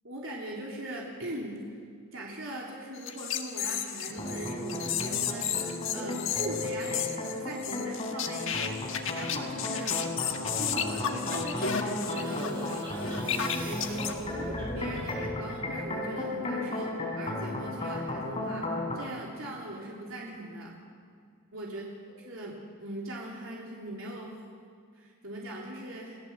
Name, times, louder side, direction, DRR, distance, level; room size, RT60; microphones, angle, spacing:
voice 1, 0.0-1.8 2.1-7.1 7.4-10.0 10.6-16.9 17.2-18.6 18.9-20.8 21.5-21.8 22.3-24.4 25.0-26.2, right 1 dB, 70° right, -3 dB, 3.4 m, -40 dB
sound 1, 3.0-14.1, left 8 dB, 65° left, 1.7 m, -33 dB
sound 2, 4.1-19.0, left 1 dB, 25° left, 4.9 m, -35 dB
sound 3, 11.2-15.2, equal, 20° right, 5.4 m, -42 dB
29.5 x 17.5 x 7.5 m, 2.2 s
head